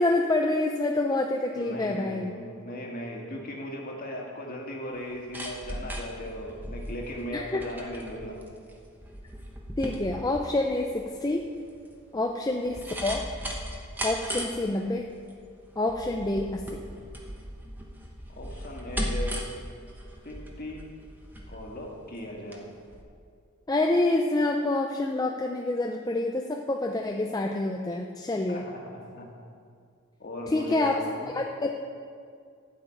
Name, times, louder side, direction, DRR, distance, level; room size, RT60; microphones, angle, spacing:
voice 1, 0.0-2.3 7.3-7.6 9.8-11.4 12.1-13.2 14.0-15.1 15.8-16.8 23.7-28.7 30.5-31.0 31.3-31.7, left 2 dB, 15° left, 1 dB, 0.4 m, -27 dB
voice 2, 1.5-8.3 18.3-19.5 20.2-20.9 21.5-22.7 28.5-28.8 29.1-29.3 30.2-31.3, left 1 dB, 40° left, -1 dB, 1.9 m, -38 dB
sound 1, 5.0-22.6 22.9-23.0, equal, 10° right, 1.0 m, -37 dB
12.0 x 5.6 x 8.7 m, 2.2 s
head